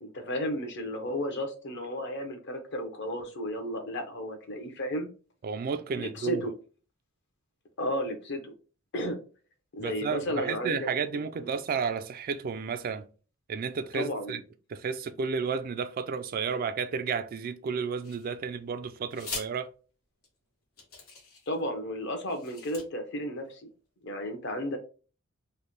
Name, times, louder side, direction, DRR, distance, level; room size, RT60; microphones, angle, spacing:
voice 1, 0.0-5.1 5.9-6.5 7.8-8.5 8.9-9.2 9.7-11.5 13.9-14.4 21.5-23.7 24.0-24.8, equal, 55° left, 0.8 m, -33 dB
voice 2, 5.4-6.4 9.8-13.1 13.5-14.4 14.7-19.7, right 5 dB, 45° right, 0.3 m, -32 dB
sound 1, 18.0-18.6 19.1-19.5 20.2-20.3 20.8-21.6 22.2-22.8, left 4 dB, 90° left, 1.4 m, -41 dB
3.2 x 2.1 x 4.1 m
head